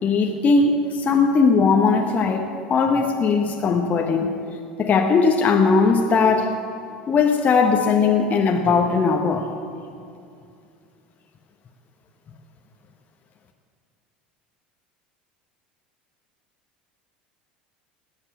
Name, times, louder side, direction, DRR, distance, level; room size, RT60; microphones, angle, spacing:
voice 1, 0.0-4.4 4.8-6.5 7.1-9.5, left 4 dB, 35° left, 2 dB, 1.3 m, -19 dB
18.5 x 8.9 x 8.4 m, 2.4 s
figure-of-eight pair, 70°, 5 cm